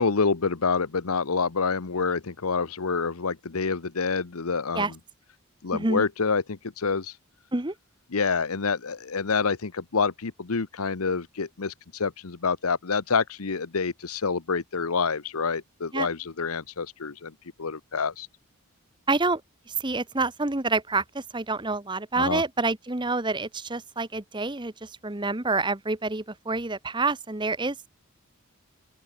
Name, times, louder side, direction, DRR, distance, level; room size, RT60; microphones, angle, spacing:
voice 1, 0.0-4.9 5.6-7.1 8.1-17.3 17.6-18.3 22.2-22.4, left 5 dB, 80° left, 0.9 m, -27 dB
voice 2, 5.7-6.1 7.5-7.7 15.9-16.1 19.1-19.4 19.7-27.9, right 3 dB, 20° right, 1.1 m, -27 dB
open air
head